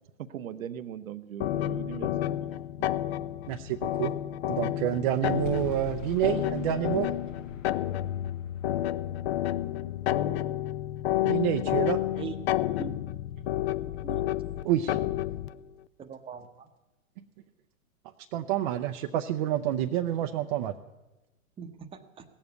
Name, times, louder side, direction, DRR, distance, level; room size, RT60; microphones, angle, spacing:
voice 1, 0.2-2.3, right 9 dB, 75° right, 11 dB, 0.8 m, -39 dB
sound 1, 1.4-15.5, left 13 dB, 50° left, 0.5 m, -30 dB
voice 2, 3.5-4.1 4.5-7.1 11.2-12.0 14.6-15.0 18.3-20.7, right 12 dB, 35° right, 5 dB, 0.5 m, -28 dB
sound 2, 5.4-10.6, left 5 dB, 65° left, 1.5 m, -44 dB
voice 3, 13.8-14.3 16.0-16.7 21.6-22.2, right 7 dB, 15° right, 6 dB, 0.8 m, -41 dB
16.5 x 7.2 x 8.0 m, 1.0 s
hypercardioid pair, 115°, 42 cm